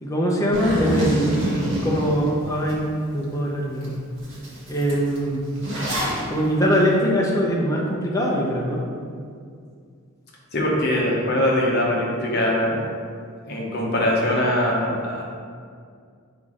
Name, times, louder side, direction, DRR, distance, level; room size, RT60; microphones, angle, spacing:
voice 1, 0.0-1.5 1.8-2.8 3.1-4.0 4.7-5.4 6.3-8.8, equal, 15° left, -3 dB, 0.7 m, -22 dB
Zipper (clothing), 0.5-2.7 3.2-3.3 3.8-3.9 4.2-6.2, equal, 60° right, 1.5 m, -26 dB
voice 2, 10.5-12.8 13.5-15.2, left 1 dB, 45° left, -3 dB, 1.1 m, -22 dB
4.6 x 4.2 x 5.0 m, 2.2 s
head